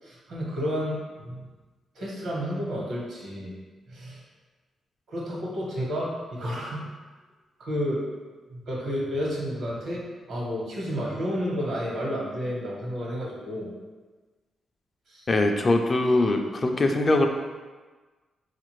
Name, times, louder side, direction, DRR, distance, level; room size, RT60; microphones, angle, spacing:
voice 1, 0.0-1.5 1.9-3.5 3.9-4.2 5.1-6.9 7.6-8.0 8.5-10.0 10.3-13.7 15.1-15.3, equal, 75° right, -4 dB, 1.1 m, -31 dB
voice 2, 15.3-17.3, left 2 dB, 35° left, 4 dB, 0.3 m, -22 dB
4.1 x 2.4 x 3.1 m, 1.3 s
cardioid pair, 100°, 0 cm